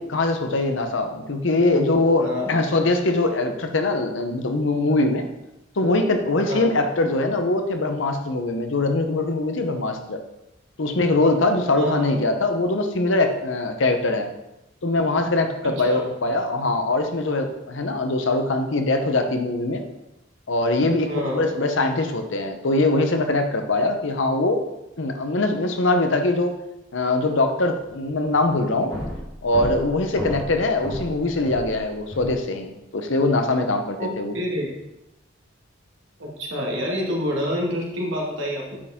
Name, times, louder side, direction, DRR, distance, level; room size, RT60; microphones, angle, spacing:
voice 1, 0.0-5.3 5.8-10.2 10.8-14.3 14.8-19.8 20.5-24.6 25.0-26.5 26.9-28.9 29.4-34.4, left 2 dB, 70° left, 6 dB, 0.8 m, -22 dB
voice 2, 11.8-12.1 15.6-16.1 21.1-21.5 34.0-34.7 36.2-38.8, equal, 70° right, -2 dB, 1.9 m, -28 dB
sound 1, 27.9-28.1 28.3-32.4, left 1 dB, 25° left, 1.5 m, -34 dB
8.7 x 4.8 x 3.6 m, 0.93 s
head